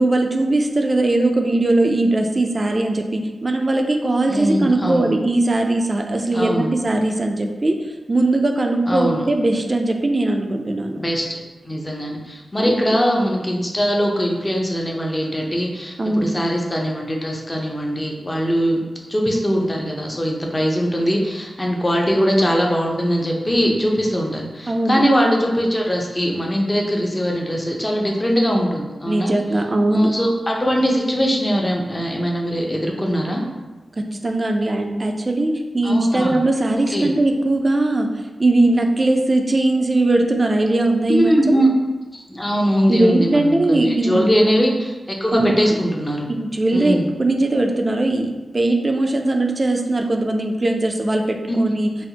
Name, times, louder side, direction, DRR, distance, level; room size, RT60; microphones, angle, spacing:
voice 1, 0.0-7.8 8.1-11.0 12.6-12.7 16.0-16.3 24.7-25.0 29.1-30.1 34.0-38.1 38.4-41.6 42.9-44.3 45.3-45.6 46.3-51.9, right 2 dB, 40° right, 3 dB, 0.4 m, -19 dB
voice 2, 4.3-5.1 6.3-6.7 8.9-9.2 10.9-18.8 19.1-29.3 29.9-33.4 35.8-36.4 36.9-37.1 41.1-41.7 42.1-46.3 46.7-47.1 51.5-51.6, equal, 25° left, 0 dB, 0.6 m, -21 dB
4.2 x 2.0 x 2.8 m, 1.2 s
cardioid pair, 45°, 0 cm